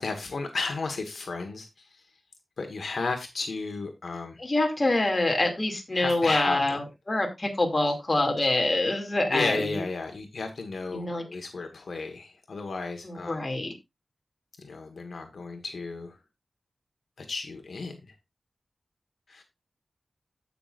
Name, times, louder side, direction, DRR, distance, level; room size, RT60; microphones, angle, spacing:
voice 1, 0.0-2.0 2.6-4.4 5.9-6.8 9.3-13.4 14.6-16.2 17.2-18.0 19.3-19.4, left 3 dB, 75° left, 5 dB, 1.5 m, -33 dB
voice 2, 4.4-9.8 10.9-11.2 13.0-13.7, left 2 dB, 30° left, 2 dB, 2.5 m, -26 dB
15.5 x 6.0 x 2.5 m, 0.22 s
wide cardioid pair, 105°, 0 cm